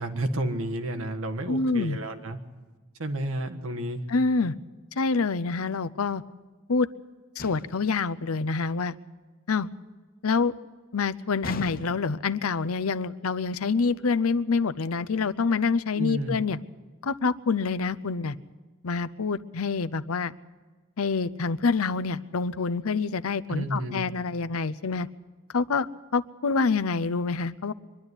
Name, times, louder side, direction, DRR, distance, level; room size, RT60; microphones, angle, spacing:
voice 1, 0.0-2.4 3.0-4.0 16.0-16.4 23.5-24.1, right 1 dB, 75° right, 6 dB, 1.6 m, -31 dB
voice 2, 1.5-2.0 4.1-4.6 5.0-6.2 6.7-6.9 7.4-9.0 9.5-9.7 10.2-10.5 10.9-16.6 17.0-18.4 18.8-20.3 21.0-25.1 25.5-27.7, left 4 dB, 85° left, 15 dB, 0.7 m, -26 dB
sound 1, 7.4-7.9 11.4-12.2, left 2 dB, 40° left, 0.9 m, -38 dB
24.0 x 11.0 x 9.7 m, 1.3 s
head